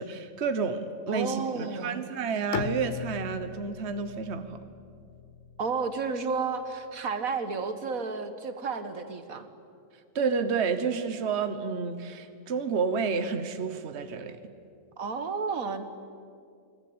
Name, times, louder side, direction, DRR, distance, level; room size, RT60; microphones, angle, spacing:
voice 1, 0.0-4.6 10.1-14.4, right 5 dB, 55° right, 9 dB, 1.4 m, -30 dB
voice 2, 1.1-2.0 5.6-9.5 15.0-15.8, right 4 dB, 80° right, 9 dB, 1.9 m, -32 dB
Bowed string instrument, 2.5-6.5, left 8 dB, 70° left, 1.2 m, -39 dB
29.0 x 21.0 x 8.7 m, 2.4 s
omnidirectional pair, 1.4 m